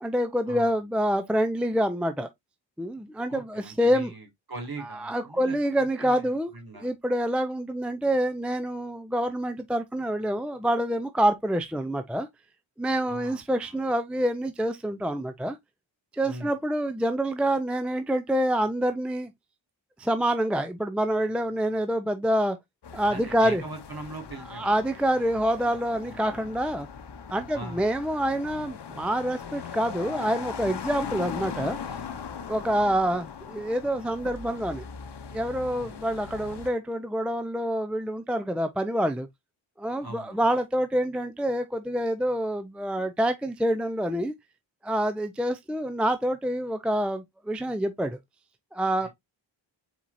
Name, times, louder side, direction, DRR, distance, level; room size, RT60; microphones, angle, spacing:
voice 1, 0.0-2.3 2.8-4.1 4.9-6.5 6.8-12.3 12.8-15.6 16.1-19.3 20.0-22.6 22.9-23.6 24.5-26.9 27.3-31.8 32.5-34.8 35.3-39.3 39.8-44.3 44.8-48.2 48.7-49.1, equal, ahead, 0.5 m, -27 dB
voice 2, 3.3-5.6 6.0-6.9 13.1-13.8 16.2-16.6 23.1-24.8 26.1-26.3 27.5-27.8 35.7-36.0 40.0-40.5 49.0-49.1, right 2 dB, 50° right, 2.3 m, -41 dB
sound 1, 22.8-36.7, left 6 dB, 55° left, 0.9 m, -39 dB
4.4 x 4.2 x 2.5 m
cardioid pair, 50°, 48 cm